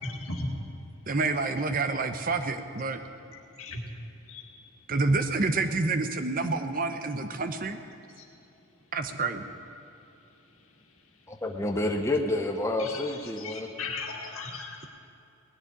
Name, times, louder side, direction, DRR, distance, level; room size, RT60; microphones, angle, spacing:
voice 1, 0.0-0.5 3.3-3.8 4.3-4.4 8.2-8.3 12.8-13.0 13.4-14.8, left 3 dB, 75° left, 1 dB, 2.1 m, -37 dB
voice 2, 1.1-3.0 4.9-7.8 8.9-9.5, right 3 dB, 40° right, 8 dB, 0.8 m, -28 dB
voice 3, 11.3-13.7, left 2 dB, 15° left, 2 dB, 0.8 m, -29 dB
18.5 x 7.3 x 9.9 m, 2.7 s
head